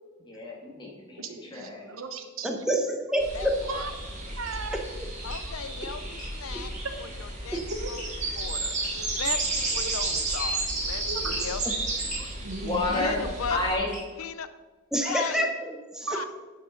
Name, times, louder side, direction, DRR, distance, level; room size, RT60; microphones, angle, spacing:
voice 1, 0.3-1.8 12.6-13.2 13.5-13.9, left 2 dB, 20° left, -2 dB, 2.3 m, -30 dB
voice 2, 1.2-2.5 3.7-3.9 4.4-4.8 5.5-5.6 7.7-8.6 8.9-9.0 9.8-10.2 11.1-11.5 12.2-13.3 16.1-16.3, right 3 dB, 75° right, 7 dB, 1.1 m, -37 dB
voice 3, 2.4-3.6 7.5-7.6 14.9-16.1, equal, 5° right, 3 dB, 0.9 m, -27 dB
sound 1, 3.2-13.8, right 2 dB, 35° right, 2.1 m, -32 dB
voice 4, 3.3-3.9 5.2-6.7 7.0-7.6 7.9-8.0 8.4-8.7 9.1-11.6 13.0-13.6 14.2-14.5 15.0-15.5 16.1-16.3, left 6 dB, 90° left, 12 dB, 0.6 m, -36 dB
sound 2, 4.4-4.6 5.2-5.5 6.2-6.4 8.0-8.3 8.8-9.0 9.7-10.0 10.5-10.8 11.3-11.5 12.1-12.3 12.9-13.2 13.9-14.1 15.0-15.4, equal, 40° left, 3.3 m, -42 dB
10.5 x 6.6 x 5.2 m, 1.3 s
head